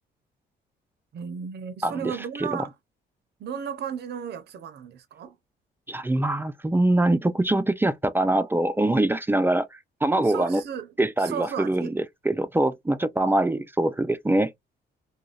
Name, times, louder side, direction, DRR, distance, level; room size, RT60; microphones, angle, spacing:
voice 1, 1.1-2.7 3.4-5.4 10.2-10.9 11.2-11.9, right 7 dB, 55° right, 0.6 m, -34 dB
voice 2, 1.8-2.7 5.9-10.6 11.0-14.5, right 1 dB, 10° right, 0.4 m, -24 dB
2.5 x 2.2 x 3.1 m
cardioid pair, 90°, 20 cm